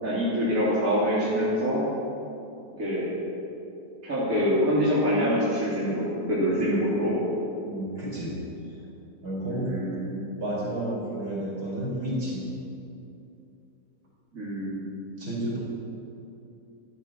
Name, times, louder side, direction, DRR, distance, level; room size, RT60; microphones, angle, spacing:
voice 1, 0.0-1.8 2.8-3.1 4.0-7.1 9.5-10.4 14.3-15.2, equal, 50° right, -9 dB, 3.8 m, -25 dB
voice 2, 7.7-8.4 9.2-9.7 10.4-12.5 15.2-15.6, right 1 dB, 65° right, -5 dB, 5.4 m, -31 dB
15.0 x 12.0 x 7.7 m, 2.7 s
omnidirectional pair, 1.8 m